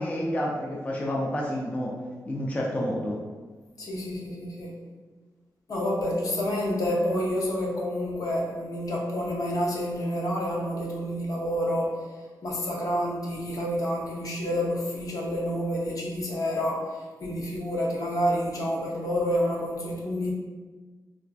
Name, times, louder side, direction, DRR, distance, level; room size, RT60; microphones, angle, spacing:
voice 1, 0.0-1.9 2.3-3.2, equal, 20° left, -3 dB, 0.4 m, -29 dB
voice 2, 3.8-4.7 5.7-12.1 12.4-20.3, equal, 60° left, -2 dB, 0.7 m, -28 dB
4.3 x 2.4 x 2.3 m, 1.4 s
wide cardioid pair, 125°, 7 cm